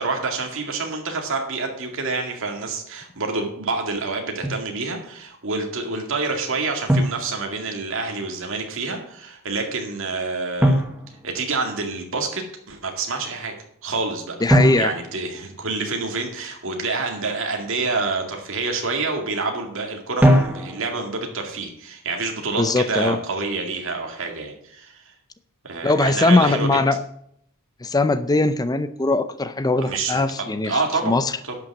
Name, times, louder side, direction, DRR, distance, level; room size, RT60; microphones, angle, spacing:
voice 1, 0.0-10.8 11.2-13.5 13.8-14.4 14.8-25.1 25.6-26.7 29.8-31.6, right 3 dB, 60° right, 2 dB, 2.2 m, -27 dB
Drum, 4.4-4.7 6.9-8.0 10.6-12.0 14.5-16.2 20.2-21.2, equal, 10° right, 1.3 m, -22 dB
voice 2, 14.4-14.9 22.6-23.2 25.8-27.0 27.8-30.8 31.0-31.3, left 2 dB, 15° left, 13 dB, 0.5 m, -20 dB
11.0 x 6.0 x 7.2 m, 0.71 s
head